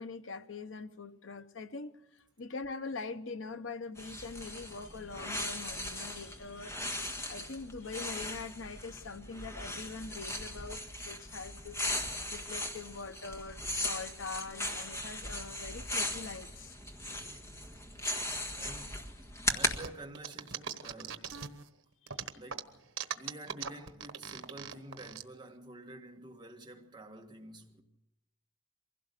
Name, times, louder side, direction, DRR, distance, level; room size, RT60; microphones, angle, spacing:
voice 1, 0.0-16.7 22.1-22.2, left 4 dB, 70° left, 0.9 m, -43 dB
sound 1, 4.0-19.8, left 1 dB, 15° left, 1.7 m, -38 dB
voice 2, 18.6-19.1 19.5-21.5 22.3-22.8 23.2-27.8, right 1 dB, 25° right, 1.7 m, -49 dB
sound 2, 19.8-21.7 22.1-25.2, right 7 dB, 85° right, 1.2 m, -40 dB
23.5 x 16.5 x 6.7 m
head